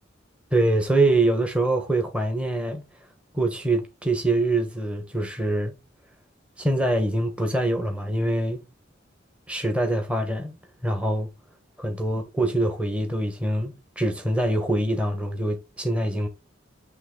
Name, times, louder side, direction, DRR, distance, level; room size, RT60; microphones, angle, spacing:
voice 1, 0.5-2.8 3.3-5.7 6.6-8.6 9.5-10.5 10.8-11.3 11.8-16.3, right 1 dB, 5° right, 1.2 m, -24 dB
8.9 x 3.3 x 3.9 m
head